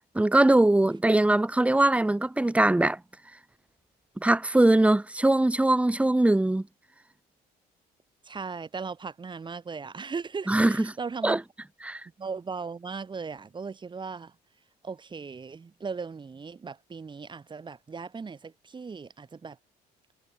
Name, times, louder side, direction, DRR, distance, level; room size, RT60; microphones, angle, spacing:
voice 1, 0.1-3.0 4.2-6.7 10.5-10.9 11.2-11.4 11.8-12.0, right 1 dB, 5° right, 1.2 m, -21 dB
voice 2, 8.2-11.4 12.2-14.4 14.8-19.6, right 5 dB, 25° right, 3.9 m, -37 dB
cardioid pair, 110°, 17 cm